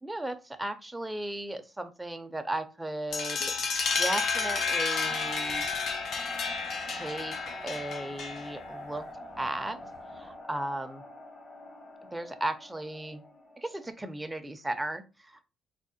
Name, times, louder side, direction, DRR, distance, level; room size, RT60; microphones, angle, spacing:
voice 1, 0.0-3.5 3.9-5.7 6.9-7.4 7.6-9.0 9.4-9.8 10.1-11.0 12.1-13.2 13.6-15.5, right 1 dB, 10° right, 8 dB, 0.5 m, -36 dB
sound 1, 3.1-8.7, left 5 dB, 65° left, 0.6 m, -31 dB
sound 2, 4.9-13.9, left 1 dB, 35° left, 1.2 m, -44 dB
3.5 x 2.1 x 4.1 m, 0.31 s
cardioid pair, 90°, 0 cm